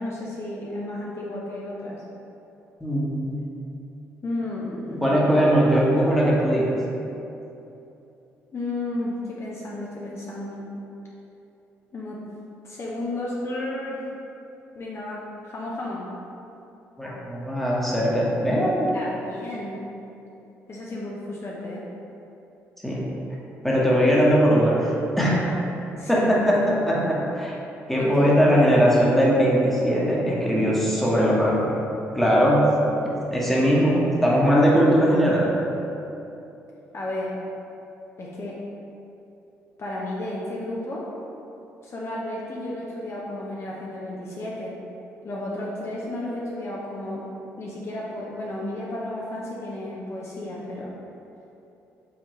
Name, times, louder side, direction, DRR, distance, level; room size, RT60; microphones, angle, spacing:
voice 1, 0.0-2.0 4.2-5.0 8.5-10.7 11.9-12.2 12.6-14.0 14.7-16.1 18.9-19.9 20.7-21.8 25.9-26.3 27.9-28.3 36.9-37.3 38.2-38.6 39.8-41.1 41.8-44.8 45.2-47.2 47.6-50.9, left 1 dB, 45° left, -5 dB, 0.7 m, -33 dB
voice 2, 2.8-3.4 5.0-6.8 17.0-18.9 22.8-23.1 23.6-25.5 26.1-27.6 27.9-31.8 32.1-32.7 33.3-33.9 34.2-35.5, equal, 5° left, -6 dB, 1.2 m, -20 dB
4.7 x 3.6 x 3.1 m, 2.9 s
hypercardioid pair, 50°, 6 cm